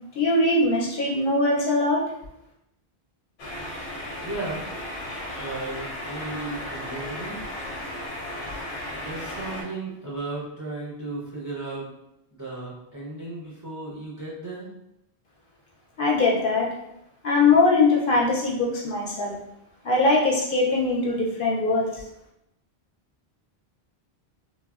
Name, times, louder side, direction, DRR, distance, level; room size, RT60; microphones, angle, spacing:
voice 1, 0.2-2.0 16.0-16.7 17.2-19.4 19.8-21.9, left 3 dB, 60° left, -3 dB, 0.7 m, -21 dB
sound 1, 3.4-9.6, left 1 dB, 85° left, 0.9 m, -35 dB
voice 2, 4.2-4.7 5.4-7.4 9.0-11.9 12.3-14.7, right 2 dB, 25° right, -6 dB, 0.4 m, -35 dB
3.2 x 2.0 x 2.3 m, 0.83 s
omnidirectional pair, 1.1 m